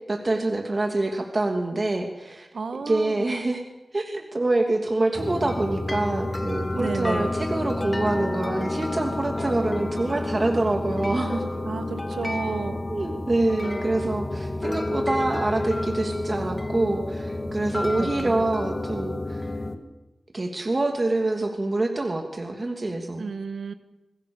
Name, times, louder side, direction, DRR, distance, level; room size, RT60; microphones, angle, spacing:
voice 1, 0.1-2.5 2.8-3.6 3.9-11.4 12.9-19.5 20.3-23.3, right 2 dB, 40° right, 3 dB, 2.9 m, -26 dB
voice 2, 2.5-3.3 6.7-7.3 11.6-12.8 18.0-18.4 23.2-23.7, right 4 dB, 85° right, 8 dB, 1.8 m, -31 dB
sound 1, 5.1-19.8, left 1 dB, 30° left, 2.4 m, -30 dB
27.5 x 20.5 x 7.3 m, 0.98 s
wide cardioid pair, 90°, 0 cm